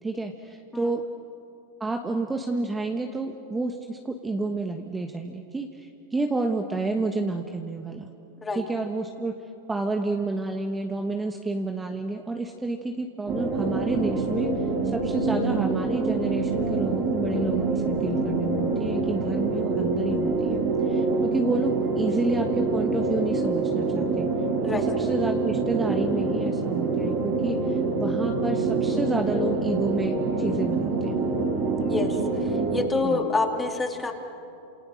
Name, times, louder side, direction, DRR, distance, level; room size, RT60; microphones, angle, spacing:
voice 1, 0.0-1.0 1.8-8.1 8.5-9.4 9.7-14.5 14.9-24.3 24.7-31.2 33.0-33.3, right 3 dB, 10° right, 4 dB, 1.3 m, -30 dB
sound 1, 13.3-32.9, right 3 dB, 50° right, 4.9 m, -26 dB
voice 2, 31.8-32.2 32.7-34.1, left 3 dB, 15° left, 3 dB, 2.7 m, -27 dB
28.5 x 28.0 x 6.4 m, 2.7 s
hypercardioid pair, 125°, 0 cm